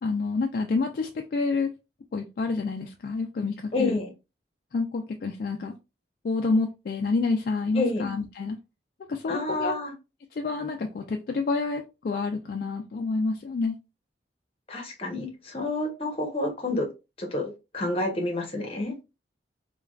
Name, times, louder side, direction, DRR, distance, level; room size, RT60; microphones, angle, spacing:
voice 1, 0.0-1.7 2.1-4.0 4.7-5.8 6.2-8.6 9.1-9.8 10.3-13.8, left 3 dB, 50° left, 4 dB, 0.3 m, -28 dB
voice 2, 3.7-4.1 7.7-8.1 9.3-9.9 14.7-16.9 17.2-18.9, left 2 dB, 30° left, 2 dB, 0.8 m, -29 dB
3.3 x 2.2 x 2.3 m, 0.27 s
head